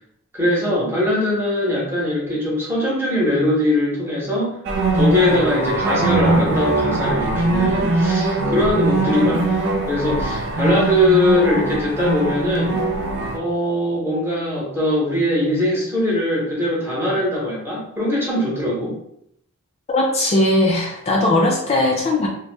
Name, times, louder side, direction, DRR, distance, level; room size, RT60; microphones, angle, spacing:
voice 1, 0.3-4.6 4.9-12.8 13.3-19.0, left 1 dB, 10° right, -5 dB, 0.9 m, -21 dB
sound 1, 4.6-13.4, right 2 dB, 55° right, 0.4 m, -21 dB
voice 2, 19.9-22.3, left 1 dB, 30° left, -1 dB, 0.3 m, -18 dB
2.7 x 2.1 x 3.1 m, 0.71 s
head